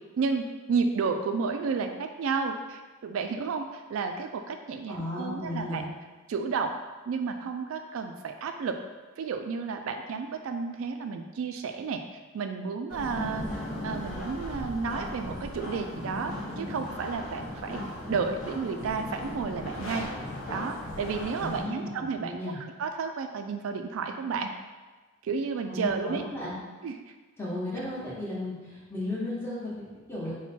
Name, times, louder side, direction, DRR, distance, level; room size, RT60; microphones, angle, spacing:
voice 1, 0.2-5.8 6.3-6.8 7.1-8.8 9.2-12.0 12.3-13.5 13.8-17.8 18.1-20.1 20.5-24.5 25.2-26.3 26.8-27.1, right 5 dB, 75° right, 5 dB, 0.3 m, -32 dB
voice 2, 4.9-5.9 21.4-21.9 22.2-22.6 25.7-26.5 27.4-30.3, left 1 dB, 10° left, -8 dB, 1.1 m, -35 dB
sound 1, 12.9-21.6, left 1 dB, 40° left, 1.0 m, -37 dB
sound 2, 19.6-21.7, equal, 65° left, 0.7 m, -42 dB
4.4 x 2.2 x 4.2 m, 1.3 s
head